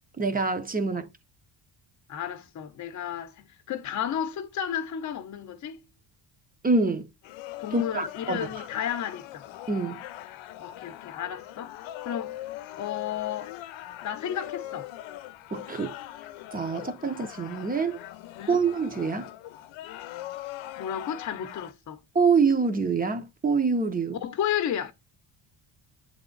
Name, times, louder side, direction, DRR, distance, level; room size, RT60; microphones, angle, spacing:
voice 1, 0.2-1.1 6.6-7.1 7.7-8.6 9.7-10.0 15.5-16.0 16.5-18.0 18.5-19.3 22.1-24.2, right 4 dB, 20° right, 0.7 m, -25 dB
voice 2, 2.1-5.8 7.6-9.5 10.6-12.4 12.8-13.5 14.0-14.9 17.0-17.1 18.3-18.6 20.8-22.0 24.2-24.9, left 9 dB, 40° left, 0.8 m, -33 dB
sound 1, 7.2-21.7, left 14 dB, 85° left, 0.7 m, -41 dB
8.2 x 3.6 x 3.8 m
cardioid pair, 155°, 45 cm